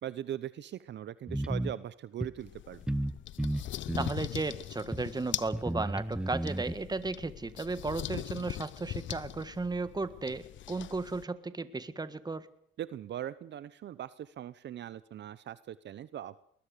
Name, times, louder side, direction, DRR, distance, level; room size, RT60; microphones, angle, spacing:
voice 1, 0.0-2.8 12.8-16.4, right 11 dB, 65° right, 16 dB, 0.8 m, -40 dB
sound 1, 1.3-1.7 2.2-2.3 2.9-3.1 3.4-4.2 4.9-5.0 5.5-6.7, right 1 dB, 5° right, 0.9 m, -33 dB
sound 2, 2.4-11.2, left 13 dB, 70° left, 0.8 m, -41 dB
voice 2, 4.0-12.5, right 3 dB, 20° right, 13 dB, 1.7 m, -35 dB
21.0 x 20.5 x 6.8 m, 0.64 s
cardioid pair, 90°, 20 cm